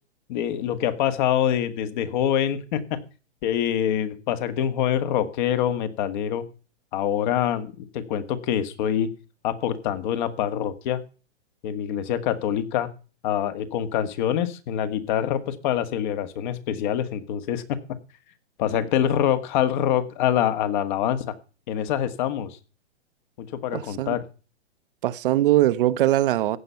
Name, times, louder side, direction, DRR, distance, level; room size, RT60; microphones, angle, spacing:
voice 1, 0.3-3.0 3.4-6.4 6.9-9.1 9.4-11.0 11.6-12.9 13.2-17.8 18.6-21.2 21.7-22.6 23.4-24.2, left 10 dB, 45° left, 1.6 m, -25 dB
voice 2, 23.7-24.2 25.0-26.6, right 14 dB, 50° right, 0.9 m, -21 dB
15.0 x 8.8 x 5.7 m
hypercardioid pair, 145°, 35 cm